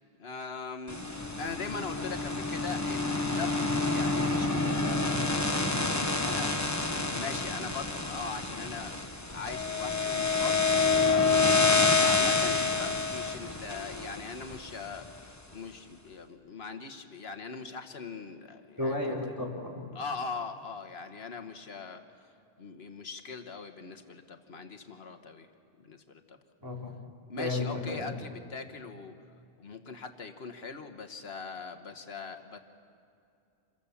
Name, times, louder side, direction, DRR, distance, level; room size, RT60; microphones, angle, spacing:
voice 1, 0.2-1.0 1.4-6.5 7.1-9.0 9.3-10.6 11.0-11.3 11.8-15.1 15.5-19.1 19.9-22.0 22.6-25.5 25.8-26.4 27.3-29.1 29.6-32.6, left 5 dB, 75° left, 6 dB, 1.4 m, -41 dB
sound 1, 0.9-15.1, left 3 dB, 15° left, 1.2 m, -28 dB
voice 2, 18.8-19.9 26.6-26.9 27.4-28.1, left 2 dB, 20° right, -4 dB, 4.4 m, -33 dB
27.5 x 22.5 x 7.1 m, 2.5 s
omnidirectional pair, 1.1 m